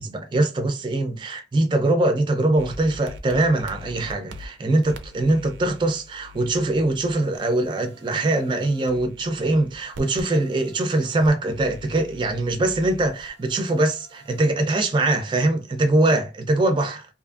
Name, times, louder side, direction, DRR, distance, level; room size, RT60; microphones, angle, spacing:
voice 1, 0.0-17.1, right 2 dB, 25° right, 0.3 m, -22 dB
sound 1, 2.6-14.5, left 1 dB, 85° right, 0.5 m, -44 dB
2.7 x 2.5 x 2.3 m
head